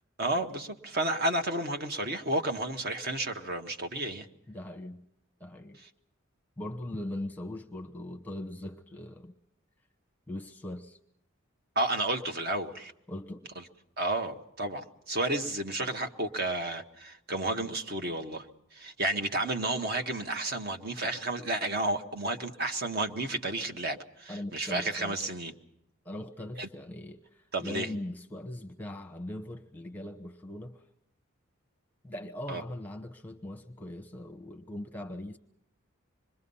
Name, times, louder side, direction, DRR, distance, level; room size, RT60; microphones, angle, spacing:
voice 1, 0.2-4.3 5.8-5.9 11.7-12.9 14.0-18.5 18.7-25.5 26.6-26.7 27.5-27.9 32.5-32.6, right 2 dB, 50° right, 1.5 m, -31 dB
voice 2, 4.5-5.0 5.4-5.8 6.6-9.3 10.3-11.0 13.1-13.5 24.3-25.2 26.0-30.8 32.0-35.4, left 1 dB, 10° left, 1.0 m, -40 dB
26.5 x 22.0 x 5.6 m
head